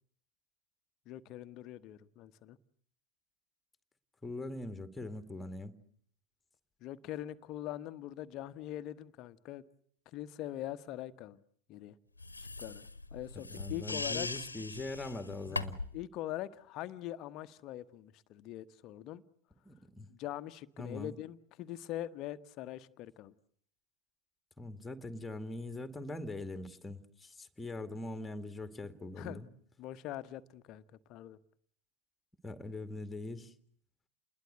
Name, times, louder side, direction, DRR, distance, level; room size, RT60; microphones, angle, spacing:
voice 1, 1.1-2.6 6.8-9.6 10.1-11.4 11.7-12.0 12.4-14.3 15.5-15.6 15.9-19.2 20.1-23.3 29.2-29.4 29.8-30.8 31.1-31.4, left 13 dB, 35° left, 1.2 m, -43 dB
voice 2, 4.2-5.7 13.5-15.8 19.6-20.1 20.8-21.1 24.6-29.5 32.4-33.5, left 2 dB, 10° left, 2.2 m, -42 dB
sound 1, 12.2-16.0, left 3 dB, 80° left, 1.3 m, -40 dB
29.0 x 21.0 x 8.2 m
figure-of-eight pair, 90°, 0 cm